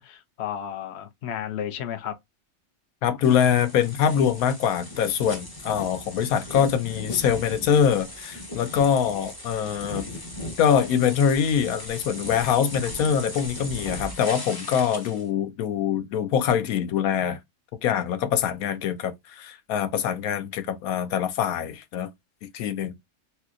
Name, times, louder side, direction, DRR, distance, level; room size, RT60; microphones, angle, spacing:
voice 1, 0.0-2.2, left 9 dB, 60° left, 0.8 m, -33 dB
voice 2, 3.0-10.1 10.6-17.4 17.8-22.1 22.4-23.0, left 8 dB, 85° left, 1.1 m, -24 dB
sound 1, 3.2-15.3, left 1 dB, 20° left, 0.7 m, -38 dB
3.3 x 2.9 x 2.4 m
omnidirectional pair, 1.5 m